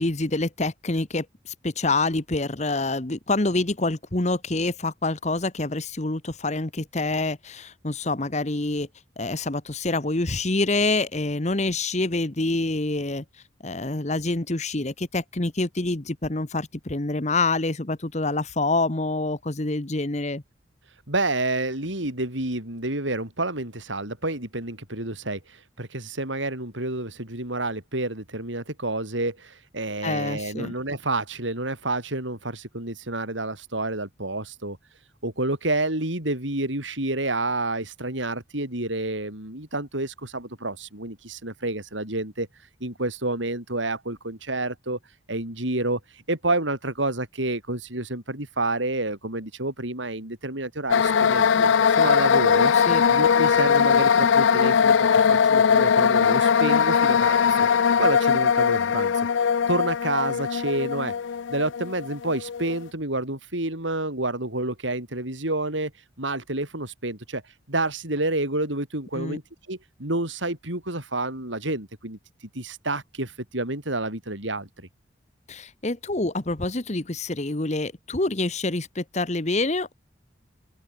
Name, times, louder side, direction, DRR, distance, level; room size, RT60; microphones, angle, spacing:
voice 1, 0.0-8.9 9.2-13.2 13.6-20.4 30.0-30.7 52.7-53.0 69.1-69.4 75.5-79.9, left 2 dB, 35° left, 1.2 m, -26 dB
voice 2, 21.1-34.8 35.2-42.5 42.8-45.0 45.3-46.0 46.3-52.7 53.1-57.7 58.0-59.1 59.7-61.1 61.5-65.9 66.2-67.4 67.7-69.4 69.7-72.2 72.5-74.9, right 2 dB, 85° right, 6.6 m, -29 dB
sound 1, 50.9-62.8, left 7 dB, 80° left, 0.4 m, -20 dB
open air
head